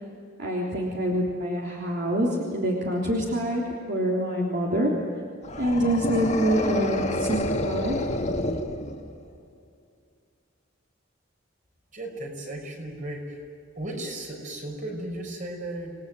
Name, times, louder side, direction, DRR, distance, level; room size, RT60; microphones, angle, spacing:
voice 1, 0.4-4.9 5.6-8.0, right 1 dB, 60° right, -3 dB, 3.6 m, -26 dB
sound 1, 5.4-9.3, left 1 dB, 35° left, 1.9 m, -29 dB
voice 2, 11.9-13.4 13.8-16.0, right 1 dB, 40° right, 2 dB, 5.9 m, -35 dB
28.5 x 19.5 x 9.3 m, 2.3 s
head